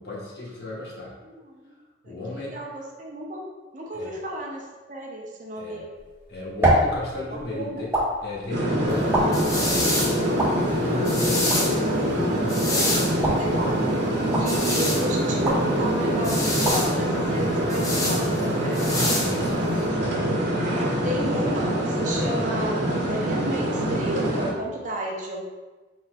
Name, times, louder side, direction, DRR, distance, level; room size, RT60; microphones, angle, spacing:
voice 1, 0.0-1.2 2.0-2.6 3.9-4.1 5.6-5.9 6.3-8.0 8.2-9.9 10.7-11.5 11.8-12.1 12.6-13.1 14.1-14.6 19.2-19.9 20.8-21.1, left 2 dB, 65° left, -3 dB, 1.1 m, -36 dB
voice 2, 1.2-1.7 2.0-3.4 3.7-5.9 7.3-7.9 11.5-11.9 13.4-13.7 14.1-18.8 21.0-25.5, right 1 dB, 45° right, -1 dB, 0.7 m, -33 dB
sound 1, 5.9-18.1, equal, 15° right, 0.9 m, -30 dB
sound 2, 8.5-24.5, equal, 90° right, 1.2 m, -24 dB
sound 3, 8.9-19.9, left 1 dB, 20° left, 0.7 m, -29 dB
4.6 x 4.1 x 2.3 m, 1.2 s
head